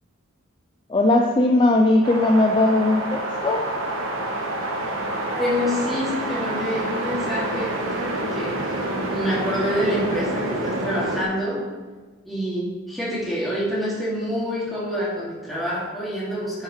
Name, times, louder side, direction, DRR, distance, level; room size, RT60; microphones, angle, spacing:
voice 1, 0.9-3.7, left 2 dB, 25° left, 3 dB, 0.4 m, -19 dB
sound 1, 2.0-11.2, right 1 dB, 75° right, 1.2 m, -27 dB
voice 2, 5.3-8.5 9.1-11.6 12.2-16.6, equal, ahead, -9 dB, 2.4 m, -27 dB
10.0 x 6.5 x 3.2 m, 1.3 s
head